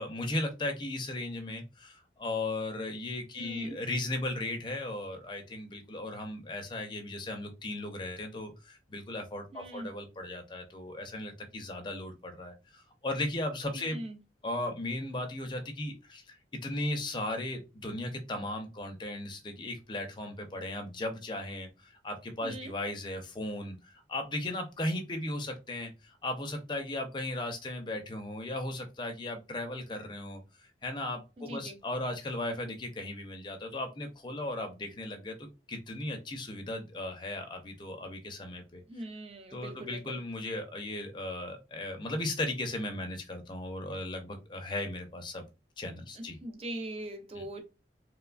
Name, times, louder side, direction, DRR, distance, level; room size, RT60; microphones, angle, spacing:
voice 1, 0.0-14.0 14.4-38.8 39.5-45.4 45.8-46.4 47.4-47.5, left 1 dB, 25° left, 0.5 m, -36 dB
voice 2, 3.3-3.8 9.5-9.9 13.7-14.2 22.4-22.7 31.4-31.8 38.9-40.2 46.2-47.6, right 1 dB, 30° right, 0.5 m, -41 dB
3.0 x 2.2 x 2.3 m
head